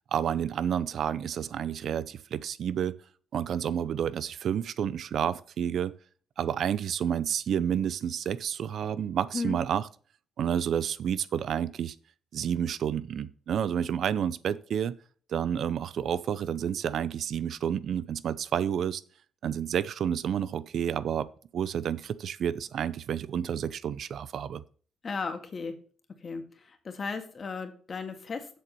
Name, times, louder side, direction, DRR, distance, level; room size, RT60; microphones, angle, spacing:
voice 1, 0.1-3.0 3.3-5.9 6.4-9.9 10.4-11.9 12.3-14.9 15.3-19.0 19.4-21.3 21.5-24.6, right 8 dB, 65° right, 0.6 m, -30 dB
voice 2, 25.0-25.8 26.2-26.4 26.8-28.6, left 4 dB, 40° left, 1.8 m, -35 dB
7.7 x 6.9 x 5.4 m
cardioid pair, 90°, 0 cm